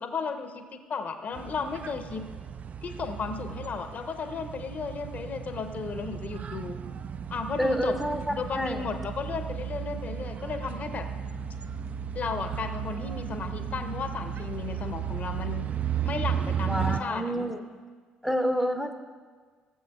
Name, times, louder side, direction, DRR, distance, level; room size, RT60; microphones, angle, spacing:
voice 1, 0.0-2.3 2.8-6.8 7.3-8.0 8.3-11.1 12.1-15.7 16.0-17.2, left 5 dB, 40° left, 7 dB, 0.8 m, -34 dB
sound 1, 1.3-17.0, right 8 dB, 35° right, 0.4 m, -34 dB
voice 2, 7.6-8.9 16.6-17.6 18.2-18.9, equal, ahead, 6 dB, 0.7 m, -28 dB
18.0 x 7.5 x 2.4 m, 1.5 s
figure-of-eight pair, 50°, 4 cm